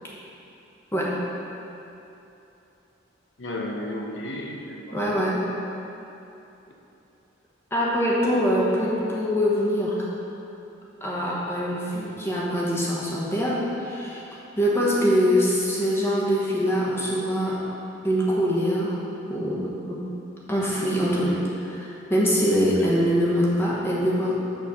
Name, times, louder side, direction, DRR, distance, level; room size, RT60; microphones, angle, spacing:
voice 1, 3.4-5.2 24.3-24.4, left 1 dB, 65° left, -1 dB, 0.9 m, -33 dB
voice 2, 4.9-5.4 7.7-10.1 11.0-14.2 14.6-17.6 18.0-19.0 19.3-20.0 20.5-24.4, equal, 10° left, -6 dB, 1.1 m, -23 dB
6.2 x 4.2 x 6.4 m, 2.9 s
head